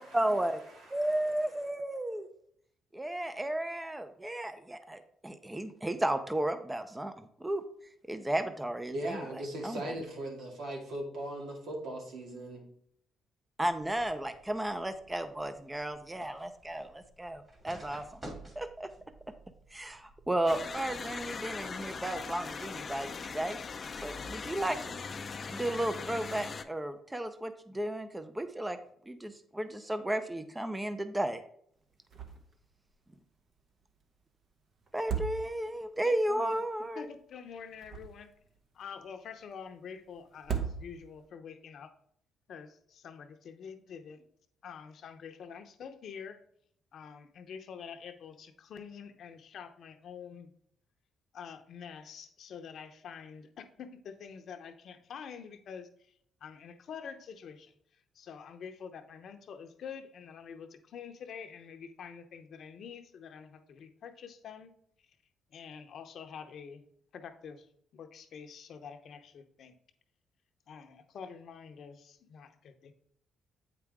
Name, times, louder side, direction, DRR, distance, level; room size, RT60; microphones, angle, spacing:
voice 1, 0.0-0.6 0.9-2.3 2.9-7.6 8.1-9.2 9.6-9.8 13.6-18.0 18.6-18.9 19.7-23.6 24.0-25.0 25.5-28.8 29.1-31.4 34.9-37.0, right 1 dB, 10° right, 9 dB, 0.6 m, -34 dB
voice 2, 0.7-1.4 8.9-12.6, right 1 dB, 80° right, 0 dB, 2.2 m, -39 dB
sound 1, 13.7-20.8, right 1 dB, 30° right, 2.5 m, -53 dB
sound 2, 20.5-26.6, left 5 dB, 40° left, 0.5 m, -40 dB
sound 3, 32.1-32.6 32.9-33.0 34.9-35.9 37.6-38.5 40.3-41.3, right 7 dB, 55° right, 1.0 m, -37 dB
voice 3, 36.0-36.6 36.9-38.3 38.7-41.9 42.5-44.2 44.6-46.4 46.9-50.5 51.3-64.7 65.5-66.8 67.1-67.7 67.9-69.7 70.7-72.9, left 6 dB, 65° left, 7 dB, 0.9 m, -47 dB
8.3 x 5.0 x 3.5 m, 0.66 s
cardioid pair, 90°, 0 cm